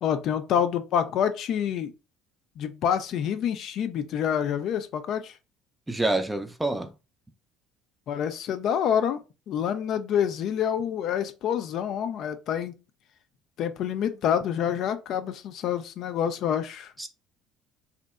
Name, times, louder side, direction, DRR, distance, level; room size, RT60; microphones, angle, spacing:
voice 1, 0.0-1.9 2.6-5.4 8.1-9.2 9.5-12.8 13.6-16.9, left 8 dB, 60° left, 0.3 m, -27 dB
voice 2, 5.9-6.9 17.0-17.1, right 2 dB, 10° right, 0.5 m, -27 dB
2.7 x 2.1 x 2.2 m
hypercardioid pair, 65°, 0 cm